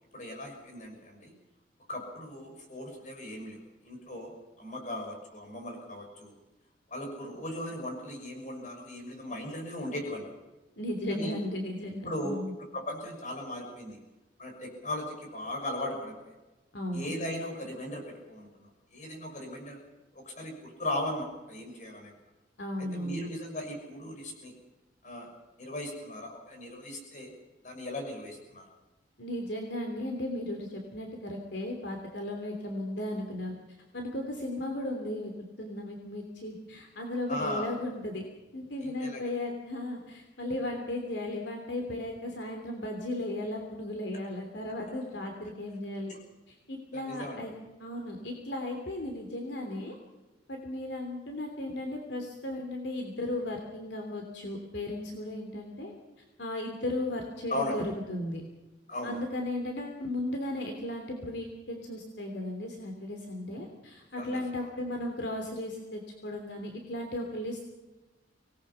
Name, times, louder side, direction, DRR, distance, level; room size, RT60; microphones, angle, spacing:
voice 1, 0.1-1.3 1.9-3.6 3.8-6.3 6.9-10.3 11.1-11.3 12.0-12.4 12.7-14.0 14.4-16.3 16.9-19.8 20.1-22.1 22.9-24.5 25.0-25.3 25.6-27.3 27.6-28.7 37.3-37.7 38.8-39.2 46.1-46.2 46.9-47.4 57.5-57.8 58.9-59.2 64.2-64.7, left 1 dB, 40° left, 2 dB, 6.4 m, -38 dB
voice 2, 10.8-12.5 16.7-17.1 22.6-23.3 29.2-33.5 33.9-35.3 35.6-38.2 38.5-46.1 46.5-49.9 50.5-55.9 56.4-58.4 59.0-67.6, left 1 dB, 70° left, 2 dB, 3.1 m, -35 dB
25.5 x 19.5 x 5.8 m, 1.1 s
head